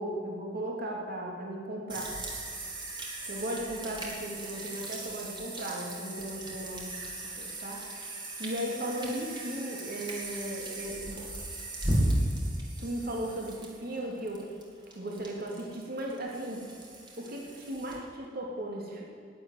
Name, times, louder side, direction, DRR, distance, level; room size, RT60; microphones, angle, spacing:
voice 1, 0.0-2.1 3.3-6.9 7.4-8.1 8.4-11.3 12.8-14.5 14.9-16.6 17.2-19.0, right 1 dB, 55° right, -1 dB, 2.9 m, -36 dB
sound 1, 1.9-18.0, right 1 dB, 25° right, 2.7 m, -36 dB
11.5 x 10.0 x 9.4 m, 2.4 s
head